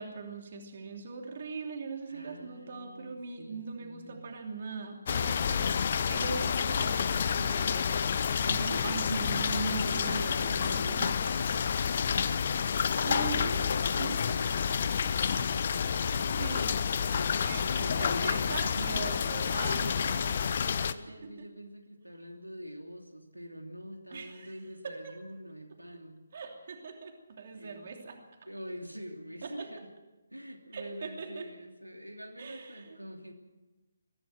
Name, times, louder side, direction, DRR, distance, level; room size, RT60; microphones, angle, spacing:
voice 1, 0.0-8.2 8.5-11.2 13.0-14.5 16.4-16.8 17.4-20.5 20.8-20.9 21.2-21.5 24.1-24.5 24.8-25.1 26.3-28.2 29.4-29.7 30.7-31.5 32.4-33.0, right 4 dB, 45° right, 3 dB, 2.9 m, -40 dB
voice 2, 2.1-4.2 8.4-9.0 9.3-16.5 17.1-19.4 19.7-26.2 27.5-27.9 28.4-29.9 30.3-33.3, equal, 85° right, 3 dB, 3.1 m, -45 dB
sound 1, 5.1-20.9, left 7 dB, 40° left, 0.9 m, -29 dB
23.0 x 15.5 x 7.8 m, 1.1 s
figure-of-eight pair, 145°, 0 cm